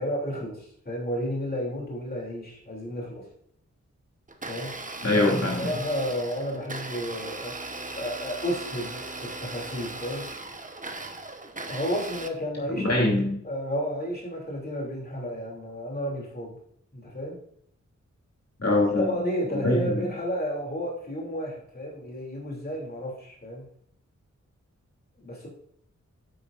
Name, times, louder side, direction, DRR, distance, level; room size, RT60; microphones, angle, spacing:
voice 1, 0.0-3.2 4.5-4.7 5.1-5.3 5.6-7.5 8.0-10.3 11.7-13.0 13.4-16.5 16.9-17.4 19.0-23.7 25.2-25.5, equal, 30° left, -3 dB, 3.1 m, -32 dB
Domestic sounds home sounds, 4.3-12.3, right 2 dB, 25° right, 1.0 m, -38 dB
voice 2, 5.0-5.7 12.7-13.4 18.6-19.1 19.5-20.0, left 2 dB, 55° left, -2 dB, 2.9 m, -23 dB
10.0 x 8.9 x 2.6 m, 0.68 s
wide cardioid pair, 110°, 29 cm